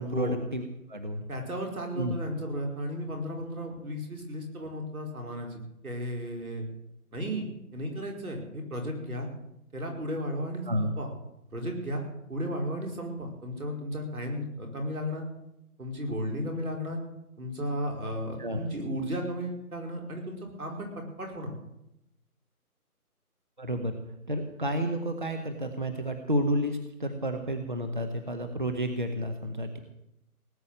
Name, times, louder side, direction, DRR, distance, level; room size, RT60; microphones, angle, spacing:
voice 1, 0.0-1.2 2.0-2.2 10.7-10.9 18.4-18.6 23.6-24.0 24.3-29.8, equal, 30° right, 6 dB, 0.9 m, -31 dB
voice 2, 1.3-6.6 7.1-9.3 9.7-11.1 11.5-12.0 12.3-15.2 15.8-17.0 17.4-21.5, equal, 65° right, 1 dB, 4.9 m, -34 dB
18.5 x 8.7 x 7.8 m, 0.84 s
figure-of-eight pair, 175°, 46 cm